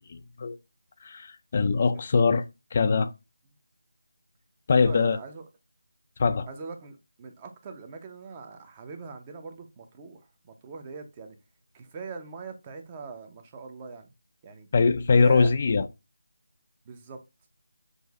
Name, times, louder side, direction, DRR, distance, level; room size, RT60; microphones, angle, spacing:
voice 1, 0.1-0.6 1.0-2.4 2.7-3.1 4.7-5.2 6.2-6.5 14.7-15.8, left 4 dB, 35° left, 0.3 m, -22 dB
voice 2, 1.9-2.3 4.7-5.5 6.5-11.4 11.7-14.1 14.4-14.7 15.2-15.5 16.9-17.2, right 4 dB, 20° right, 0.6 m, -41 dB
6.3 x 2.5 x 2.4 m
figure-of-eight pair, 165°, 0 cm